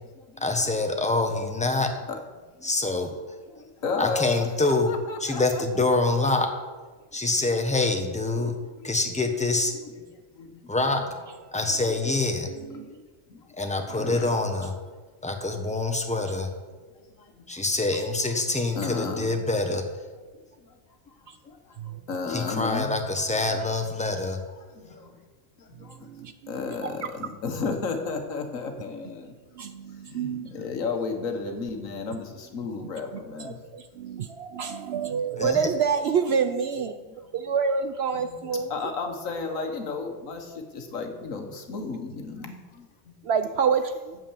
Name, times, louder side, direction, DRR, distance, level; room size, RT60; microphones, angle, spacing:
voice 1, 0.4-1.9 2.6-3.1 4.0-4.9 5.2-6.5 7.1-8.5 8.8-9.7 10.7-11.0 11.5-12.5 13.6-14.7 15.2-16.5 17.5-19.8 22.3-24.4 35.4-35.6, left 2 dB, 5° left, 4 dB, 1.0 m, -25 dB
voice 2, 3.5-5.8 8.3-8.9 10.3-10.7 12.7-13.0 13.3-13.4 13.9-14.3 16.9-17.6 18.8-19.3 20.6-20.8 21.4-23.0 24.5-25.2 25.6-26.1 26.5-29.3 30.1-33.6 34.1-34.3 38.1-43.1, left 4 dB, 80° left, 5 dB, 1.7 m, -34 dB
voice 3, 12.5-12.9 17.9-18.0 18.6-18.7 21.3-21.4 21.8-22.0 25.8-27.1 29.5-30.7 31.5-31.6 32.8-39.2 43.2-44.2, right 6 dB, 65° right, 9 dB, 0.7 m, -28 dB
8.5 x 7.4 x 7.3 m, 1.3 s
omnidirectional pair, 1.4 m